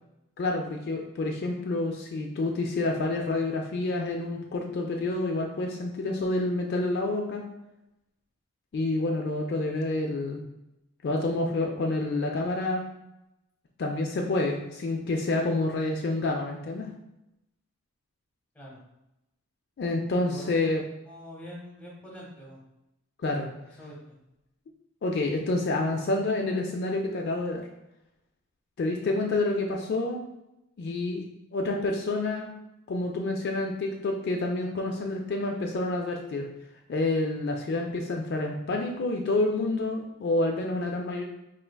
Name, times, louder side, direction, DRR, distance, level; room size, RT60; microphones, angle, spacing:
voice 1, 0.4-7.4 8.7-10.4 11.0-12.8 13.8-16.9 19.8-20.8 23.2-23.5 25.0-27.7 28.8-30.2 30.8-31.2 31.5-32.5 32.9-36.5 36.9-41.2, left 2 dB, 50° left, 1 dB, 0.3 m, -28 dB
voice 2, 20.2-20.7 21.1-22.6 23.8-24.2 29.0-29.2, equal, 5° left, -3 dB, 0.8 m, -44 dB
4.4 x 3.1 x 2.2 m, 0.91 s
head